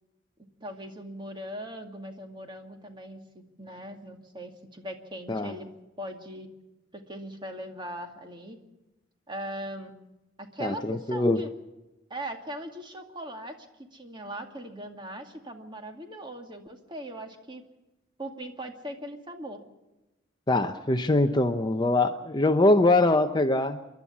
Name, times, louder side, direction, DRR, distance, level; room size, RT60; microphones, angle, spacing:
voice 1, 0.6-5.7 6.0-6.5 6.9-8.6 9.3-9.9 10.4-11.5 12.1-13.7 13.9-17.6 18.2-19.6, right 1 dB, 25° right, 4 dB, 2.2 m, -40 dB
voice 2, 10.6-11.4 20.5-23.8, left 2 dB, 20° left, 8 dB, 0.7 m, -23 dB
27.5 x 12.0 x 8.4 m, 1.0 s
head